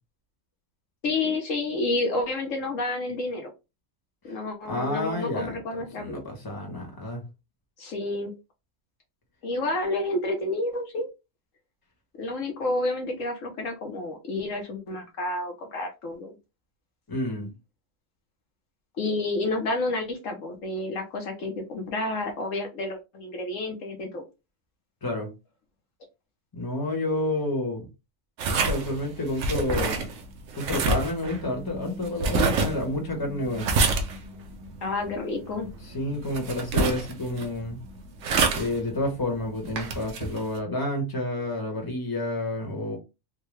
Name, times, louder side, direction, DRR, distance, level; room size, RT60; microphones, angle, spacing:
voice 1, 1.0-3.5 4.2-6.2 7.8-8.3 9.4-11.1 12.1-16.3 19.0-24.2 34.8-35.7, left 2 dB, 75° left, 1.3 m, -30 dB
voice 2, 4.7-5.6 6.0-7.2 17.1-17.5 25.0-25.3 26.5-27.9 28.4-30.1 30.5-33.7 35.9-37.8 38.5-43.0, left 1 dB, 15° left, 1.1 m, -29 dB
sound 1, 28.4-40.6, right 3 dB, 70° right, 1.0 m, -28 dB
3.7 x 2.2 x 3.1 m
omnidirectional pair, 1.4 m